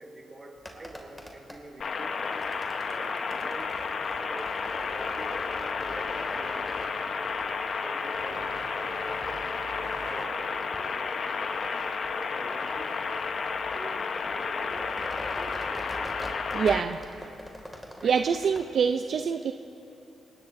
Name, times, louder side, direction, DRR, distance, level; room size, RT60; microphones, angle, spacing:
voice 1, 0.0-2.4 2.8-3.8 4.1-6.7 7.8-11.9 12.2-13.2 13.7-16.8 18.0-18.2, right 2 dB, 25° right, -1 dB, 2.4 m, -46 dB
sound 1, 0.5-18.6, equal, 5° left, 2.2 m, -44 dB
sound 2, 1.8-16.8, left 5 dB, 55° left, 0.9 m, -32 dB
Organ, 4.6-15.5, left 7 dB, 85° left, 0.6 m, -47 dB
voice 2, 16.5-17.0 18.0-19.5, right 6 dB, 60° right, 7 dB, 0.5 m, -25 dB
29.0 x 18.5 x 2.6 m, 2.8 s
cardioid pair, 95°, 0 cm